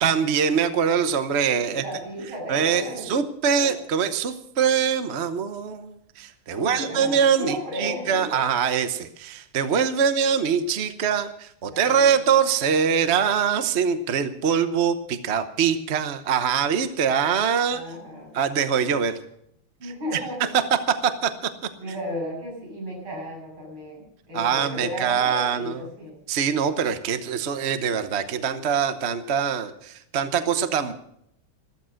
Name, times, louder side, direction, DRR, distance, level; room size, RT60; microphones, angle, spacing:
voice 1, 0.0-1.8 2.5-17.8 18.3-19.2 19.8-19.9 20.4-21.5 24.3-25.8 26.3-30.9, right 7 dB, 45° right, 10 dB, 0.9 m, -23 dB
voice 2, 1.5-3.1 3.5-3.7 6.5-8.4 11.6-12.1 17.7-18.4 19.8-20.5 21.8-26.2, equal, 70° right, -2 dB, 8.3 m, -34 dB
15.0 x 13.5 x 6.4 m, 0.73 s
omnidirectional pair, 2.4 m